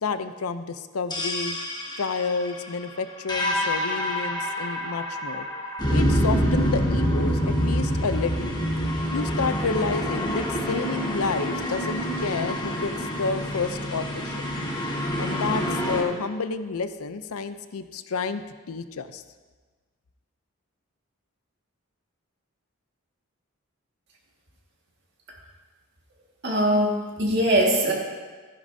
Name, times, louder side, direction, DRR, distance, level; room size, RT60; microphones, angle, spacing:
voice 1, 0.0-1.6 2.0-5.5 5.9-8.6 9.1-14.3 15.2-19.2, left 4 dB, 90° left, 11 dB, 0.6 m, -30 dB
sound 1, 1.1-16.0, equal, 20° left, 1.3 m, -26 dB
voice 2, 26.4-27.9, right 1 dB, 50° right, -2 dB, 1.9 m, -21 dB
15.5 x 10.5 x 2.7 m, 1.4 s
head